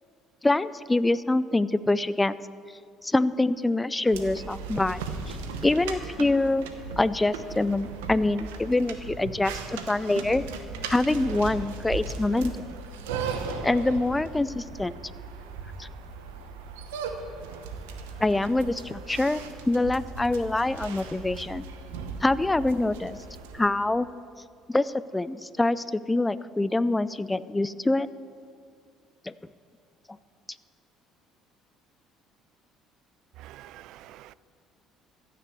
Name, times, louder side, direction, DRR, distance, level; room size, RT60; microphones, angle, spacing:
voice 1, 0.4-2.4 3.0-5.4 5.6-6.7 7.0-9.6 9.9-10.4 10.9-12.6 13.6-14.9 15.8-15.9 18.2-21.6 22.2-23.2 23.5-24.1 24.7-28.1 29.3-29.4, left 2 dB, 15° left, 16 dB, 0.5 m, -25 dB
sound 1, 4.1-23.7, right 4 dB, 90° right, 1.1 m, -37 dB
voice 2, 33.4-34.3, right 14 dB, 70° right, 20 dB, 0.3 m, -47 dB
14.5 x 6.8 x 7.7 m, 2.3 s
hypercardioid pair, 70°, 0 cm